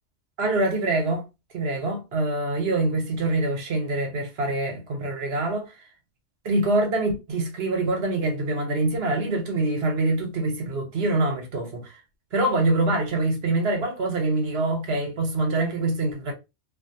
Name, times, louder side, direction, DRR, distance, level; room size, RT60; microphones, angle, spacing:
voice 1, 0.4-1.2 1.5-5.7 6.4-11.8 12.3-16.3, right 2 dB, 65° right, 1.0 m, -25 dB
2.5 x 2.1 x 2.7 m
omnidirectional pair, 1.2 m